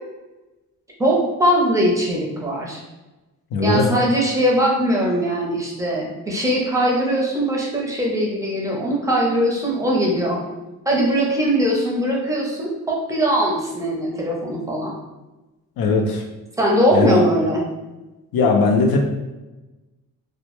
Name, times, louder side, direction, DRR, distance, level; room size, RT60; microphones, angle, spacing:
voice 1, 1.0-2.8 3.6-10.4 10.9-14.9 16.6-17.6, equal, 10° right, -3 dB, 0.4 m, -20 dB
voice 2, 3.5-3.9 15.8-16.2 16.9-17.2 18.3-19.0, left 3 dB, 85° left, 2 dB, 0.5 m, -18 dB
2.1 x 2.0 x 3.0 m, 1.1 s
cardioid pair, 130°, 34 cm